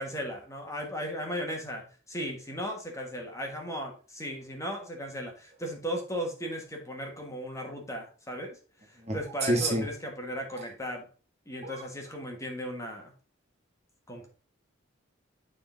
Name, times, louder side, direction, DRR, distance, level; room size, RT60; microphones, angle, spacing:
voice 1, 0.0-8.6 8.9-11.1 11.5-13.1 14.1-14.3, equal, 15° left, 1 dB, 1.5 m, -36 dB
voice 2, 9.1-9.8 11.6-11.8, right 1 dB, 35° right, 1 dB, 1.4 m, -28 dB
9.8 x 3.8 x 3.9 m, 0.38 s
head